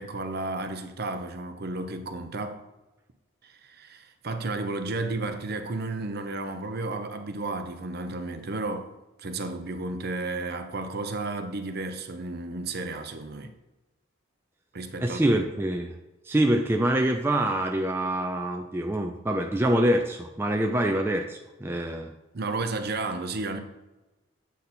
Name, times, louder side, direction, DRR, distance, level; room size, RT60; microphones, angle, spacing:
voice 1, 0.0-2.6 3.4-8.9 9.2-13.5 14.7-15.4 22.3-23.6, right 2 dB, 50° right, 0.7 m, -33 dB
voice 2, 15.0-15.9 16.3-22.1, right 1 dB, 10° right, 0.3 m, -25 dB
8.3 x 4.0 x 4.2 m
head